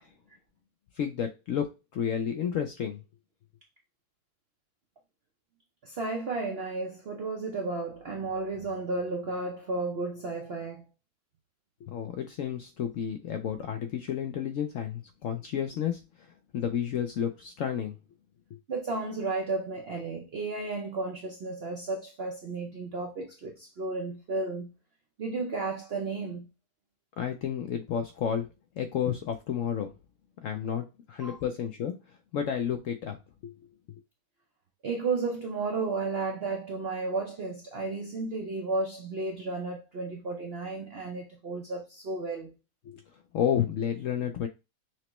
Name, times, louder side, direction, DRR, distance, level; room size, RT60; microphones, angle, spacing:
voice 1, 1.0-3.0 11.8-16.3 16.5-17.9 27.2-28.5 28.8-29.9 30.4-32.0 32.3-33.2 33.4-33.5 42.8-43.0 43.3-44.5, left 8 dB, 70° left, 0.7 m, -31 dB
voice 2, 5.8-10.8 18.7-24.7 25.2-26.5 31.2-31.4 34.8-42.5, right 3 dB, 65° right, 0.6 m, -33 dB
5.9 x 2.1 x 3.0 m
omnidirectional pair, 1.8 m